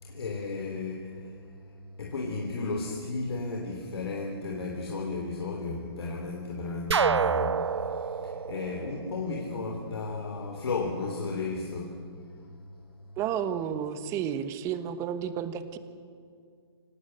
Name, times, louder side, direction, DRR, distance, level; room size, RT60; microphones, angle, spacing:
voice 1, 0.0-1.4 2.0-12.0, left 3 dB, 70° left, 1 dB, 3.5 m, -34 dB
sound 1, 6.9-9.7, right 6 dB, 90° right, 0.6 m, -28 dB
voice 2, 13.2-15.8, right 8 dB, 20° right, 12 dB, 1.2 m, -31 dB
27.0 x 17.5 x 7.8 m, 2.3 s
hypercardioid pair, 145°, 14 cm